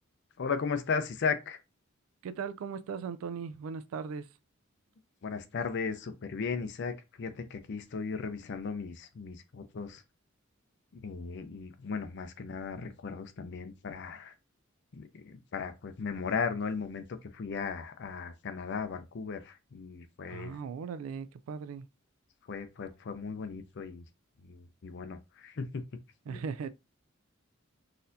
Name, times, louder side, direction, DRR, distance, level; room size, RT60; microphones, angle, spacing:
voice 1, 0.4-1.6 5.2-10.0 10.9-14.3 14.9-20.6 22.5-24.0 24.4-25.9 26.3-26.4, left 5 dB, 60° left, 0.5 m, -36 dB
voice 2, 2.2-4.3 20.3-21.9 26.3-26.7, right 6 dB, 85° right, 0.3 m, -38 dB
4.1 x 2.6 x 2.6 m
head